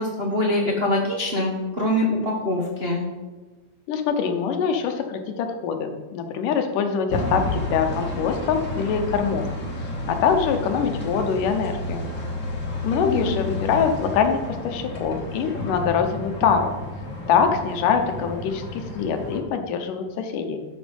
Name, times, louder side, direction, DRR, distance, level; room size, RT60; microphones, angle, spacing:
voice 1, 0.0-3.0 13.0-13.4, left 1 dB, 55° right, -3 dB, 0.6 m, -24 dB
voice 2, 3.9-9.5 10.1-12.1 12.8-16.7 17.3-20.6, left 6 dB, 90° left, 6 dB, 2.6 m, -24 dB
sound 1, 7.1-19.4, left 2 dB, 35° left, 1.3 m, -31 dB
12.0 x 6.3 x 5.3 m, 1.2 s
omnidirectional pair, 3.6 m